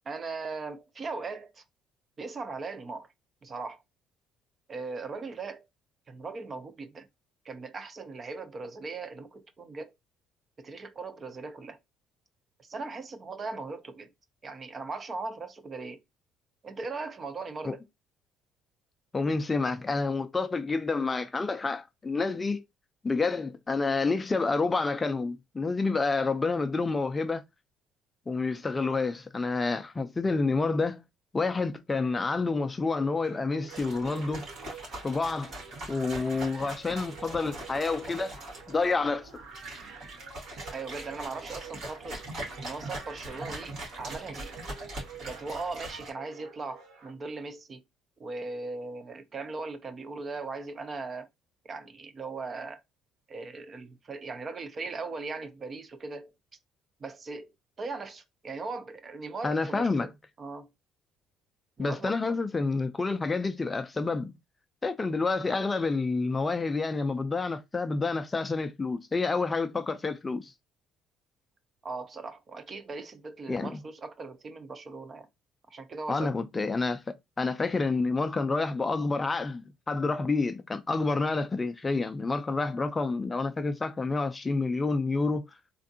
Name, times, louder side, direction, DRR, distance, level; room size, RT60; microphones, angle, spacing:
voice 1, 0.1-1.6 2.2-3.1 3.4-3.8 4.7-5.7 6.1-7.1 7.4-9.9 10.6-11.8 12.6-14.1 14.4-16.0 16.6-17.8 40.7-42.2 42.6-44.6 45.2-47.8 48.2-51.3 51.6-52.8 53.3-56.3 57.0-57.5 57.8-60.1 60.4-60.7 61.8-62.4 71.8-75.3 75.7-76.4, right 3 dB, 30° right, 0.5 m, -39 dB
voice 2, 19.1-22.6 23.0-27.4 28.3-31.0 31.3-34.5 35.0-35.5 35.9-38.4 38.7-39.3 59.4-60.1 61.8-64.3 64.8-70.5 73.5-73.8 76.1-77.0 77.4-85.4, left 3 dB, 20° left, 0.4 m, -28 dB
sound 1, 33.2-47.1, right 6 dB, 75° right, 1.1 m, -49 dB
sound 2, 33.7-46.1, right 1 dB, 55° right, 2.1 m, -42 dB
3.4 x 2.5 x 2.6 m
cardioid pair, 120°, 0 cm